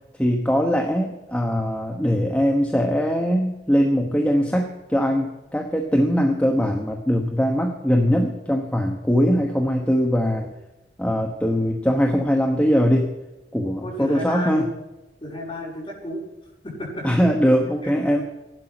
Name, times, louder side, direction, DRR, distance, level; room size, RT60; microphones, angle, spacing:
voice 1, 0.2-10.5 11.0-13.1 13.5-14.6 17.0-18.2, equal, 5° left, 1 dB, 1.1 m, -21 dB
voice 2, 13.8-14.7 15.2-16.2 16.6-17.1 17.8-17.9, left 1 dB, 30° left, -6 dB, 6.0 m, -32 dB
16.5 x 12.0 x 6.0 m, 1.0 s
head